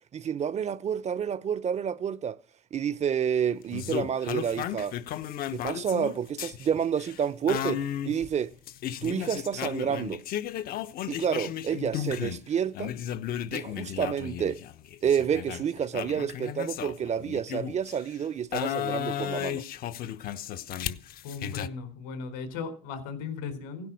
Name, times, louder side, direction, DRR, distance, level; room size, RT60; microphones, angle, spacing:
voice 1, 0.1-2.4 2.7-5.0 5.5-8.5 9.0-10.2 11.1-12.9 13.5-14.6 15.0-19.6, right 8 dB, 45° right, 0.8 m, -29 dB
sound 1, 3.7-12.5 12.7-18.0 18.5-21.7, left 11 dB, 65° left, 1.0 m, -34 dB
voice 2, 21.2-23.9, left 5 dB, 85° left, 4.1 m, -37 dB
16.5 x 10.5 x 6.3 m
supercardioid pair, 65°, 16 cm